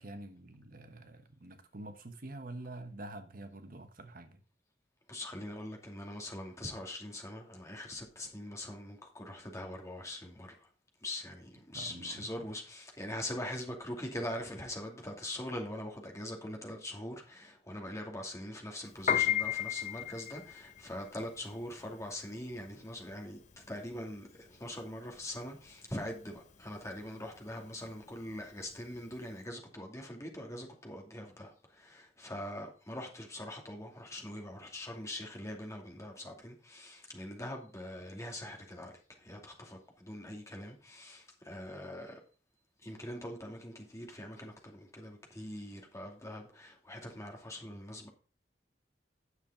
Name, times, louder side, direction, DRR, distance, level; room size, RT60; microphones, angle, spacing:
voice 1, 0.0-4.4 11.7-12.5, right 2 dB, 55° right, 1.1 m, -47 dB
voice 2, 5.1-10.7 11.0-42.2 42.8-48.1, left 1 dB, 20° left, 2.5 m, -43 dB
Piano, 18.9-29.3, left 10 dB, 45° left, 0.8 m, -36 dB
9.7 x 7.2 x 3.9 m
head